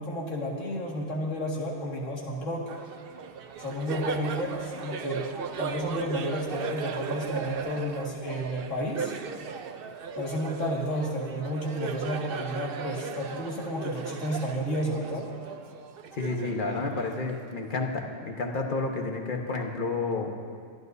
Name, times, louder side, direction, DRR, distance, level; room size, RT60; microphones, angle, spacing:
voice 1, 0.0-2.7 3.6-5.3 5.6-9.2 10.2-15.3, equal, 75° left, -3 dB, 2.4 m, -31 dB
Laughter, 2.7-17.7, right 6 dB, 55° right, 0.8 m, -37 dB
voice 2, 16.1-20.3, left 3 dB, 40° left, 2 dB, 1.3 m, -30 dB
25.0 x 12.0 x 2.7 m, 2.1 s
omnidirectional pair, 1.3 m